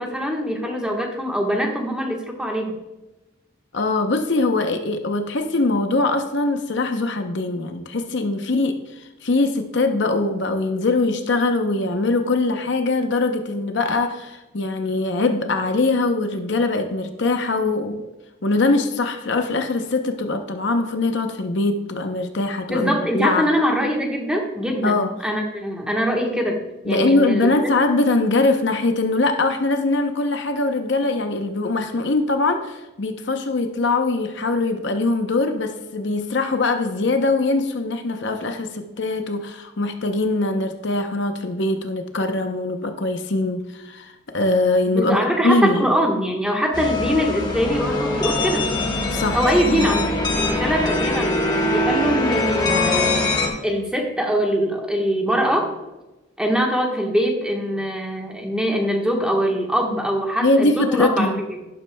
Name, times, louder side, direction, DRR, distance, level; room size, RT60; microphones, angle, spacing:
voice 1, 0.0-2.8 22.7-26.6 26.8-27.7 44.9-48.7 49.3-50.0 50.3-53.1 53.6-55.7 56.4-61.3, equal, 5° right, 0 dB, 1.2 m, -23 dB
voice 2, 3.7-18.1 18.4-23.5 24.8-25.1 26.9-45.9 49.1-49.4 49.7-49.9 60.4-61.4, left 2 dB, 55° left, 6 dB, 0.7 m, -22 dB
sound 1, 46.7-53.5, left 2 dB, 20° left, 1.2 m, -22 dB
11.5 x 10.5 x 2.2 m, 1.1 s
head